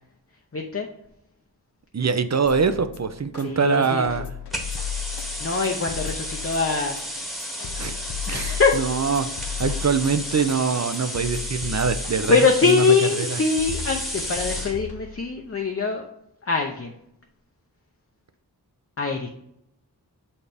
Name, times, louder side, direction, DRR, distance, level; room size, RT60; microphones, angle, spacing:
voice 1, 0.5-0.9 3.4-4.0 5.4-7.0 8.3-8.8 12.3-16.0 16.5-16.9 19.0-19.3, left 4 dB, 35° left, 2 dB, 0.6 m, -22 dB
voice 2, 1.9-4.3 7.8-8.0 8.3-9.3 9.6-12.4 12.6-12.9 13.2-13.4, right 5 dB, 45° right, 10 dB, 0.5 m, -23 dB
sound 1, 2.4-15.4, left 9 dB, 75° left, 0.6 m, -35 dB
sound 2, 4.5-14.8, equal, ahead, 1.1 m, -33 dB
7.0 x 4.3 x 3.4 m, 0.78 s
wide cardioid pair, 40°, 40 cm